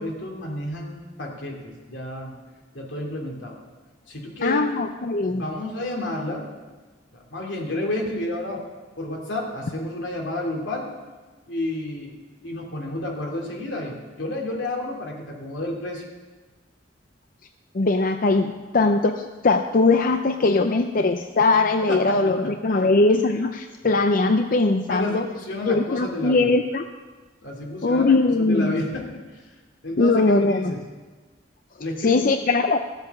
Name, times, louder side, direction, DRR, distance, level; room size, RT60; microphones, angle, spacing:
voice 1, 0.0-2.3 2.7-3.6 4.1-4.6 5.3-6.5 7.1-8.6 9.0-10.9 11.5-16.0 21.9-22.8 24.9-26.5 27.4-29.4 29.8-30.2 30.5-30.8 31.8-32.2, left 1 dB, 85° left, 0 dB, 2.7 m, -31 dB
voice 2, 4.4-5.4 17.7-25.3 25.7-26.8 27.8-28.7 30.0-30.7 32.0-32.8, left 3 dB, 50° left, 6 dB, 0.5 m, -20 dB
15.0 x 8.1 x 7.0 m, 1.3 s
head